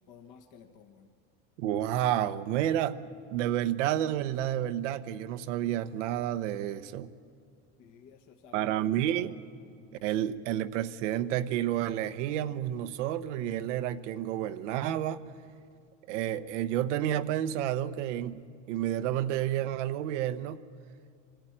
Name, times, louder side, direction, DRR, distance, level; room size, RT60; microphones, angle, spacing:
voice 1, 0.1-1.1 7.8-9.3, left 7 dB, 55° left, 1.4 m, -53 dB
voice 2, 1.6-3.0 3.3-7.1 8.5-9.3 10.0-15.2 16.1-20.6, right 11 dB, 85° right, 0.9 m, -30 dB
24.0 x 13.5 x 8.8 m
supercardioid pair, 115°, 36 cm